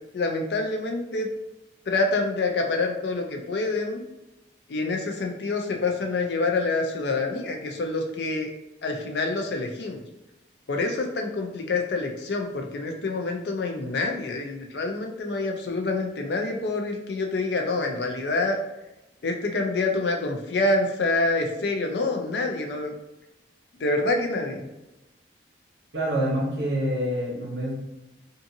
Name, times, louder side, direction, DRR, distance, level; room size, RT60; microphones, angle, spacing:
voice 1, 0.1-1.3 1.9-4.0 4.7-8.5 8.8-10.0 10.7-18.6 19.2-22.9 23.8-24.7, left 3 dB, 65° left, 3 dB, 0.4 m, -27 dB
voice 2, 25.9-27.7, equal, 75° right, -5 dB, 0.8 m, -26 dB
2.6 x 2.5 x 2.6 m, 0.95 s
head